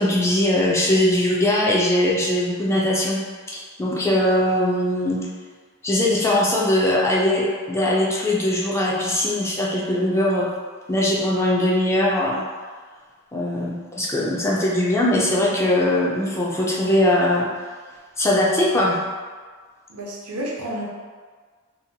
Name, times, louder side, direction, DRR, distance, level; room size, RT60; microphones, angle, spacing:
voice 1, 0.0-3.2 3.5-5.2 5.8-10.5 10.9-12.4 13.3-17.5 18.2-19.0, left 1 dB, 10° left, -5 dB, 0.3 m, -20 dB
voice 2, 19.9-20.8, right 1 dB, 75° right, -4 dB, 0.6 m, -30 dB
2.7 x 2.1 x 2.7 m, 1.5 s
head